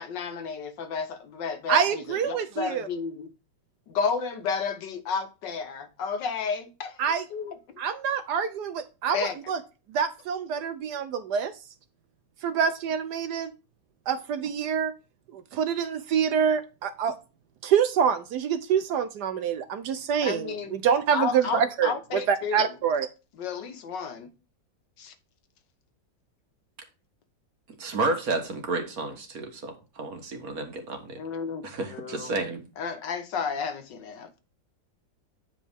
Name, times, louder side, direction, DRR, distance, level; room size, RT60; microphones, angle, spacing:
voice 1, 0.0-3.3 3.9-7.0 7.3-7.5 9.1-9.4 20.2-20.8 21.1-22.7 23.4-24.3 25.0-25.1 31.2-31.6 31.9-32.3 32.8-34.4, left 5 dB, 75° left, 1.7 m, -32 dB
voice 2, 1.7-2.9 7.0-7.2 7.8-9.6 9.9-11.5 12.4-13.5 14.1-14.9 15.3-17.2 17.6-23.1, right 7 dB, 70° right, 1.1 m, -26 dB
voice 3, 27.8-31.2 31.6-32.6, right 3 dB, 55° right, 1.7 m, -31 dB
9.2 x 5.3 x 3.5 m
omnidirectional pair, 2.0 m